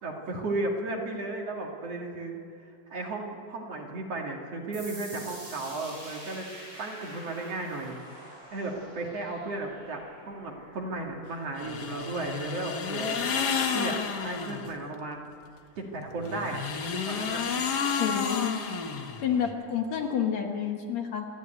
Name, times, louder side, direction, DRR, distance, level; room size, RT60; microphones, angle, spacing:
voice 1, 0.0-6.5 6.8-8.0 8.5-13.2 13.7-15.3 15.8-16.7 17.1-17.5, right 2 dB, 50° right, 0 dB, 2.9 m, -35 dB
sound 1, 4.7-12.1, right 1 dB, 85° right, 9.3 m, -47 dB
sound 2, 11.6-14.7 16.2-19.5, left 6 dB, 80° left, 0.9 m, -31 dB
voice 2, 18.0-18.6 19.2-21.3, left 8 dB, 60° left, 3 dB, 2.4 m, -29 dB
27.5 x 10.5 x 9.0 m, 2.2 s
omnidirectional pair, 3.8 m